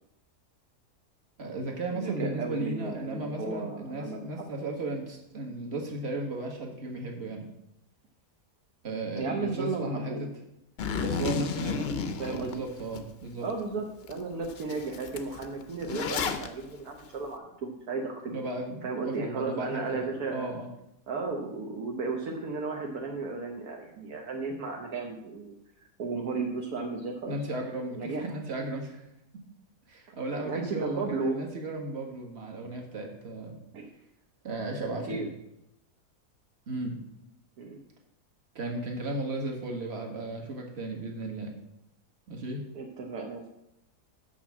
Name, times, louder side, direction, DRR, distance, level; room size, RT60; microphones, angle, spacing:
voice 1, 1.4-7.5 8.8-10.3 11.0-11.9 12.3-13.5 18.3-20.7 27.3-29.0 29.9-33.6 34.4-35.2 36.7-37.0 38.5-41.5 42.3-42.6, right 2 dB, 40° right, 1 dB, 1.7 m, -35 dB
voice 2, 1.9-4.2 9.2-10.2 12.2-12.6 13.4-18.3 18.8-20.5 21.1-25.6 26.0-27.3 28.0-28.2 30.4-31.4 33.7-33.9 35.1-35.2 37.6-37.8 42.7-43.5, right 4 dB, 70° right, 1 dB, 1.4 m, -34 dB
Zipper (clothing), 10.8-13.0 13.5-13.6 14.1-14.2 14.4-16.5, left 5 dB, 55° left, 0.7 m, -32 dB
6.2 x 6.0 x 7.2 m, 0.83 s
omnidirectional pair, 1.7 m